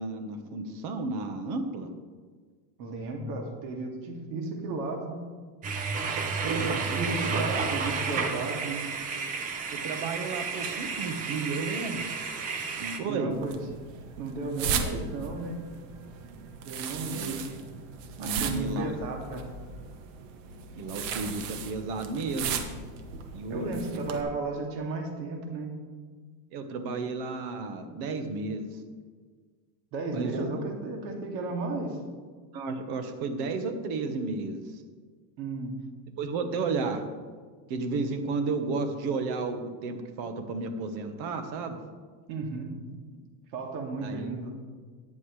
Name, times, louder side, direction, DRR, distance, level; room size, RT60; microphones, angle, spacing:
voice 1, 0.0-1.9 6.4-7.6 9.7-12.1 12.8-13.3 17.1-17.6 18.2-18.9 20.8-22.6 23.3-24.2 26.5-28.7 30.1-30.6 32.5-34.8 36.2-37.0 37.7-41.8 44.0-44.3, right 3 dB, 50° right, 7 dB, 1.3 m, -33 dB
voice 2, 2.8-5.2 6.5-8.8 13.0-13.6 14.2-15.6 16.6-17.4 18.2-19.4 23.5-25.7 29.9-32.0 35.4-35.7 42.3-42.7 43.5-44.5, right 3 dB, 90° right, 1 dB, 2.5 m, -34 dB
sound 1, 5.6-13.0, right 5 dB, 20° right, 0.3 m, -31 dB
sound 2, 13.3-24.2, right 6 dB, 70° right, 1.3 m, -37 dB
14.0 x 9.7 x 3.2 m, 1.5 s
cardioid pair, 160°, 50 cm